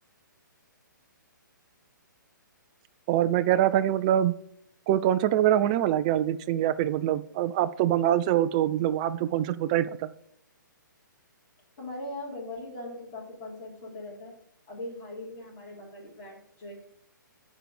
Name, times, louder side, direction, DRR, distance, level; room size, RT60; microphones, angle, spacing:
voice 1, 3.1-4.3 4.9-10.1, right 12 dB, 20° right, 11 dB, 0.3 m, -24 dB
voice 2, 11.8-14.3 14.7-16.8, left 1 dB, 25° left, -3 dB, 3.3 m, -40 dB
9.1 x 4.7 x 6.7 m, 0.73 s
hypercardioid pair, 160°, 11 cm